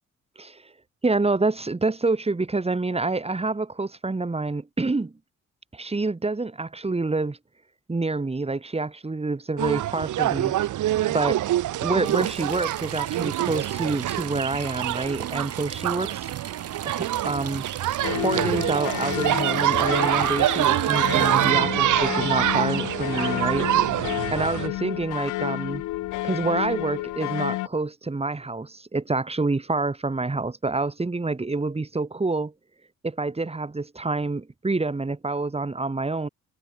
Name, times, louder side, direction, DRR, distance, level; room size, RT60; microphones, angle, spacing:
voice 1, 0.4-0.7 1.0-5.1 5.7-7.4 7.9-10.5 11.1-11.4 11.8-16.3 16.8-17.7 18.2-23.7 24.3-25.8 26.2-32.5 33.0-36.3, right 3 dB, 20° right, 4.0 m, -27 dB
sound 1, 9.6-24.7, right 13 dB, 80° right, 4.1 m, -25 dB
sound 2, 12.0-21.5, right 8 dB, 55° right, 3.6 m, -39 dB
sound 3, 18.0-27.7, left 17 dB, 90° left, 1.5 m, -30 dB
cardioid pair, 90°, 30 cm